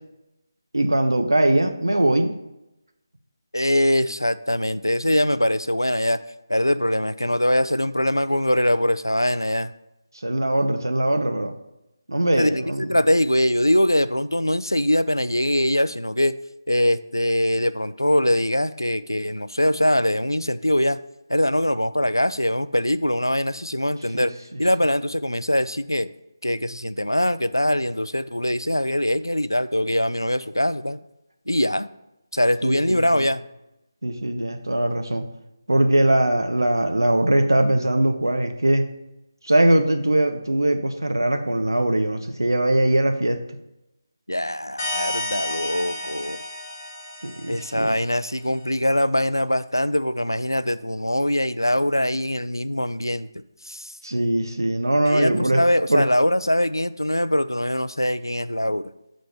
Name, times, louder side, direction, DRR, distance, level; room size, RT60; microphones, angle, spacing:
voice 1, 0.7-2.4 10.2-11.5 12.1-13.0 24.1-24.3 32.6-33.3 34.0-35.2 35.7-38.8 39.4-43.4 47.2-48.0 54.0-55.6 55.9-56.0, right 1 dB, 75° right, 6 dB, 0.6 m, -21 dB
voice 2, 3.5-6.2 6.5-9.7 12.4-16.4 16.7-21.0 21.3-24.3 24.6-26.1 26.4-31.0 31.5-31.9 32.3-33.4 44.3-46.4 47.5-53.3 53.6-53.9 55.0-58.9, left 1 dB, 90° left, 14 dB, 0.3 m, -22 dB
sound 1, 44.8-48.2, left 2 dB, 20° left, 1.8 m, -31 dB
6.6 x 4.1 x 4.6 m, 0.91 s
figure-of-eight pair, 155°, 2 cm